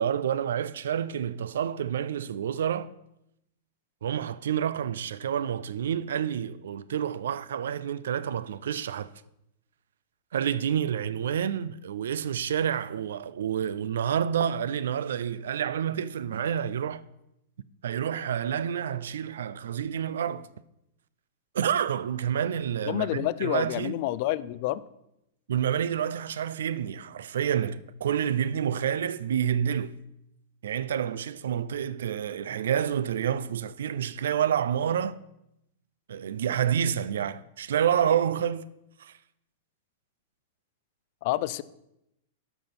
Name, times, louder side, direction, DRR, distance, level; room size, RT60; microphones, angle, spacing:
voice 1, 0.0-2.9 4.0-9.1 10.3-17.0 17.8-20.5 21.5-24.0 25.5-30.0 30.6-35.2 36.1-38.7 39.0-39.2, right 9 dB, 90° right, 0.5 m, -28 dB
voice 2, 22.9-24.8 41.2-41.6, left 16 dB, 45° left, 0.4 m, -28 dB
12.0 x 5.5 x 6.0 m
supercardioid pair, 160°, 0 cm